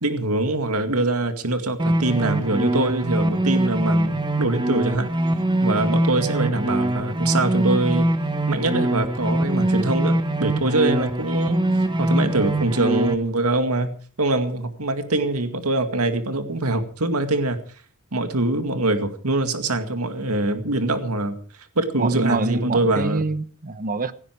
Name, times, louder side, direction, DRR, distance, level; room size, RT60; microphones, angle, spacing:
voice 1, 0.0-5.1 5.6-8.1 8.5-11.6 12.0-17.6 18.1-21.4 21.8-23.2, right 2 dB, 80° right, 2.2 m, -23 dB
sound 1, 1.8-13.1, right 1 dB, 20° right, 1.4 m, -23 dB
voice 2, 22.0-24.1, right 3 dB, 40° right, 1.1 m, -25 dB
17.0 x 16.0 x 4.7 m
head